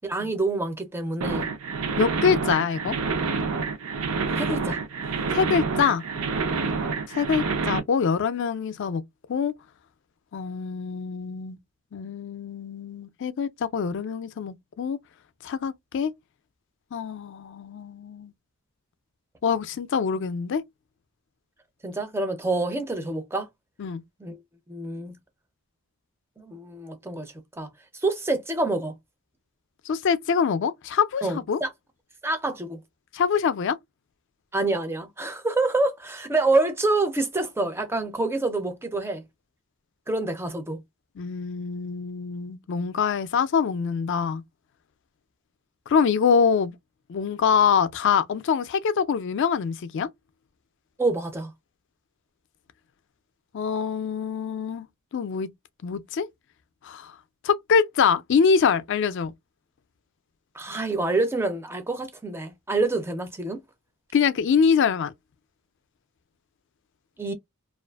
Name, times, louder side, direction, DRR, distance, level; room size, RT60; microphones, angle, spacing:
voice 1, 0.0-1.5 4.4-4.8 6.6-6.8 21.8-23.5 24.2-24.4 24.7-25.2 26.4-27.7 28.0-28.9 31.2-31.7 32.2-32.8 34.5-39.2 40.1-40.8 51.0-51.5 60.5-63.6 67.2-67.3, right 2 dB, 10° right, 0.4 m, -27 dB
sound 1, 1.2-7.8, right 4 dB, 70° right, 0.5 m, -28 dB
voice 2, 2.0-3.0 5.3-6.0 7.1-9.0 9.3-9.5 10.3-11.6 11.9-15.0 15.4-16.1 16.9-18.3 19.4-20.6 23.8-24.0 29.9-31.6 33.1-33.8 41.2-44.4 45.9-46.8 47.1-50.1 53.5-54.9 55.1-55.5 55.8-56.3 56.8-57.1 57.4-59.3 64.1-65.1, left 6 dB, 55° left, 0.3 m, -24 dB
2.5 x 2.3 x 2.3 m
head